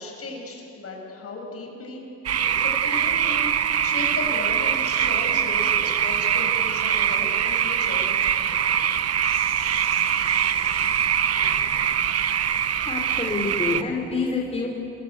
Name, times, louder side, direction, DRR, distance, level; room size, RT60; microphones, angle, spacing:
voice 1, 0.0-2.0 2.4-8.1, left 2 dB, 50° left, 1 dB, 7.7 m, -36 dB
sound 1, 2.3-13.8, right 9 dB, 55° right, 1.2 m, -23 dB
Sink (filling or washing), 6.1-14.2, right 5 dB, 85° right, 4.5 m, -48 dB
voice 2, 12.8-14.7, left 3 dB, 20° left, -1 dB, 4.0 m, -27 dB
28.0 x 25.0 x 8.3 m, 2.9 s
cardioid pair, 90°, 30 cm